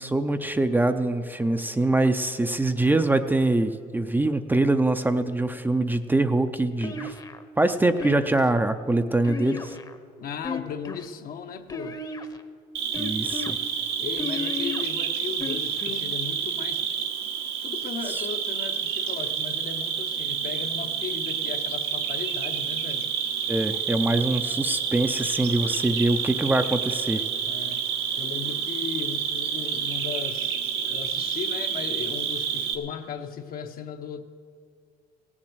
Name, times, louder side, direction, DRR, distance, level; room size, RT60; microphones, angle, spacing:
voice 1, 0.0-7.2 7.6-9.8 13.0-13.6 18.1-18.3 23.5-27.2, right 2 dB, 10° right, 8 dB, 0.5 m, -24 dB
sound 1, 6.8-7.4 8.0-8.5 9.2-10.0 10.4-11.1 11.7-12.4 12.9-13.5 14.2-14.8 15.4-16.0, left 4 dB, 25° left, 0.9 m, -34 dB
voice 2, 10.2-12.0 14.0-16.9 17.6-23.1 27.4-27.9 28.2-34.2, left 6 dB, 60° left, 6 dB, 1.0 m, -36 dB
Cricket, 12.7-32.7, right 7 dB, 90° right, 1.3 m, -29 dB
17.0 x 7.4 x 7.9 m, 2.3 s
cardioid pair, 110°, 17 cm